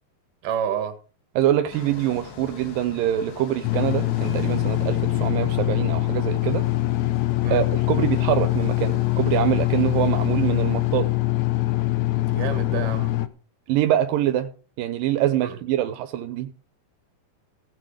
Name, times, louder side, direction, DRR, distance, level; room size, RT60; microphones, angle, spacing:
voice 1, 0.4-0.9 7.4-7.7 12.3-13.1 15.4-15.6, right 8 dB, 70° right, 3.2 m, -29 dB
voice 2, 1.4-6.7 7.5-11.1 13.7-14.5 14.8-16.5, right 12 dB, 90° right, 2.6 m, -24 dB
sound 1, 1.7-11.0, left 7 dB, 85° left, 3.5 m, -43 dB
sound 2, 3.6-13.3, left 17 dB, 70° left, 1.9 m, -23 dB
sound 3, 4.2-8.5, right 5 dB, 50° left, 4.1 m, -39 dB
17.0 x 8.0 x 5.1 m
omnidirectional pair, 3.9 m